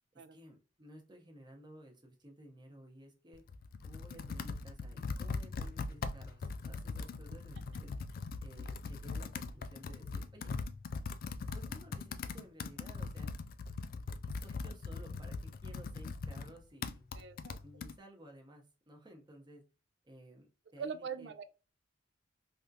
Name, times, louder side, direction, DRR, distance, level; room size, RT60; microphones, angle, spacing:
voice 1, 0.1-3.4 3.8-7.9 8.4-10.6 11.5-13.3 14.2-15.4 15.6-17.0 17.6-19.6 20.0-20.5 20.7-21.3, right 1 dB, 25° right, 0.8 m, -55 dB
Computer keyboard, 3.3-17.9, left 4 dB, 50° left, 0.3 m, -41 dB
voice 2, 17.1-17.6 20.8-21.4, right 6 dB, 60° right, 0.4 m, -42 dB
3.4 x 2.4 x 2.6 m
head